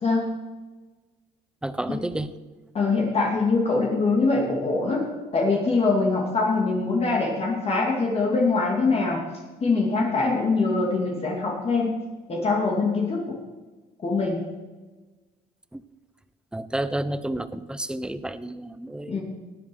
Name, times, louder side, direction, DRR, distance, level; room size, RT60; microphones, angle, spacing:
voice 1, 1.6-2.3 15.7-15.8 16.5-19.2, right 1 dB, 5° right, 14 dB, 0.7 m, -30 dB
voice 2, 2.7-9.2 9.6-12.0 12.3-13.3 14.0-14.4 19.1-19.2, left 3 dB, 35° left, -1 dB, 2.8 m, -23 dB
19.0 x 7.8 x 6.4 m, 1.3 s
cardioid pair, 110°, 17 cm